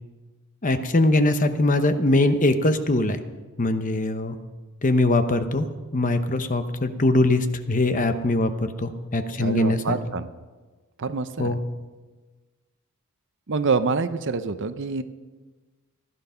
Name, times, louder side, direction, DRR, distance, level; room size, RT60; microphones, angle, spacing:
voice 1, 0.6-3.2 3.6-4.4 4.8-5.7 5.9-9.8 11.4-11.6, left 2 dB, 35° left, 9 dB, 0.8 m, -22 dB
voice 2, 9.4-10.3 11.0-11.6 13.5-15.0, right 4 dB, 55° right, 11 dB, 0.7 m, -26 dB
15.5 x 11.0 x 5.7 m, 1.3 s
head